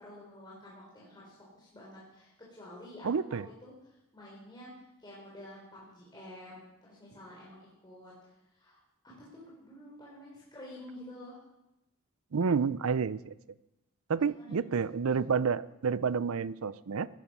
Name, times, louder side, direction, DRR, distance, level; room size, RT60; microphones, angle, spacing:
voice 1, 0.0-3.1 3.6-4.7 5.0-6.6 6.9-8.1 8.5-8.8 9.0-11.4 14.4-14.7, left 1 dB, 20° left, -6 dB, 3.7 m, -50 dB
voice 2, 3.0-3.5 12.3-13.3 14.1-17.1, right 5 dB, 70° right, 17 dB, 0.5 m, -29 dB
15.5 x 11.5 x 5.6 m, 0.91 s
head